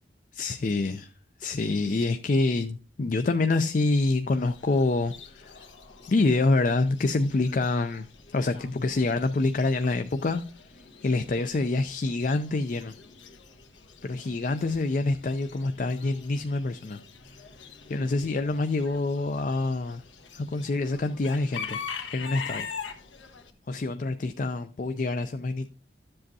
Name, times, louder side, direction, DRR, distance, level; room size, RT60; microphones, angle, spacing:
voice 1, 0.3-1.1 1.4-5.7 6.1-8.1 8.3-10.4 10.7-12.9 14.0-17.0 17.9-20.0 20.3-21.8 22.1-22.7 23.7-25.7, left 3 dB, 45° left, 0.4 m, -26 dB
Chicken rooster / Bird, 4.3-23.5, left 6 dB, 80° left, 1.2 m, -44 dB
13.0 x 7.6 x 2.7 m
head